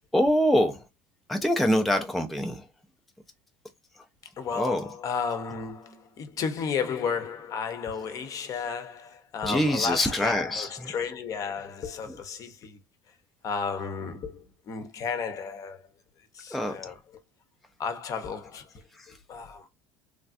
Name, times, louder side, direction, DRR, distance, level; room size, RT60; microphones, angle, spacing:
voice 1, 0.1-0.8 1.3-2.6 4.6-4.8 9.4-10.9 16.5-16.9, equal, ahead, 0.3 m, -25 dB
voice 2, 4.4-12.8 13.4-15.9 16.4-17.0 17.8-18.6 19.3-19.6, left 6 dB, 40° left, 0.7 m, -33 dB
3.2 x 2.3 x 2.5 m
cardioid pair, 130°, 9 cm